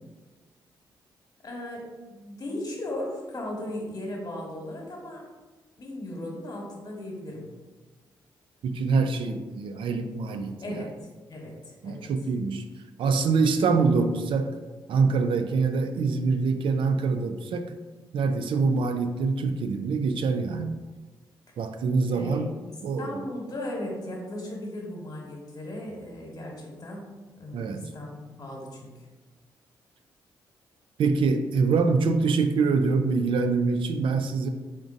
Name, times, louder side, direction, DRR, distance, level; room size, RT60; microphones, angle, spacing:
voice 1, 1.4-5.2 5.8-7.5 10.6-10.9 11.3-12.1 22.1-22.4 23.0-27.1 27.4-29.0, left 1 dB, 45° left, -1 dB, 1.3 m, -37 dB
voice 2, 8.6-10.8 11.8-12.7 13.0-14.5 14.9-17.7 18.1-20.8 21.6-22.5 22.8-23.2 27.5-27.9 31.0-34.5, right 4 dB, 65° right, 7 dB, 0.4 m, -25 dB
3.9 x 3.6 x 2.6 m, 1.3 s
supercardioid pair, 50°, 9 cm